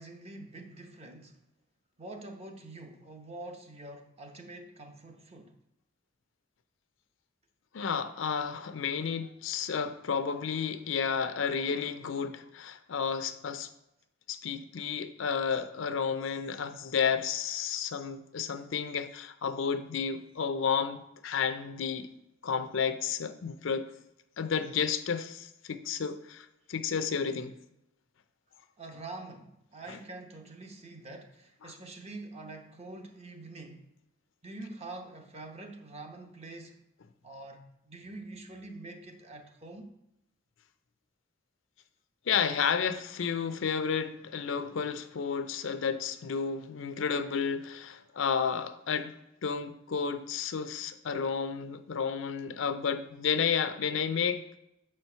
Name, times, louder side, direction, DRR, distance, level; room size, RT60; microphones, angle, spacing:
voice 1, 0.0-1.4 2.0-5.5 28.8-33.9 34.4-36.8 37.2-39.9, right 2 dB, 30° right, 0.8 m, -45 dB
voice 2, 7.7-13.7 14.3-22.1 22.4-23.9 24.4-27.5 29.9-30.0 31.6-31.7 42.3-49.1 49.4-54.4, left 6 dB, 70° left, 0.5 m, -31 dB
6.2 x 4.5 x 5.5 m
head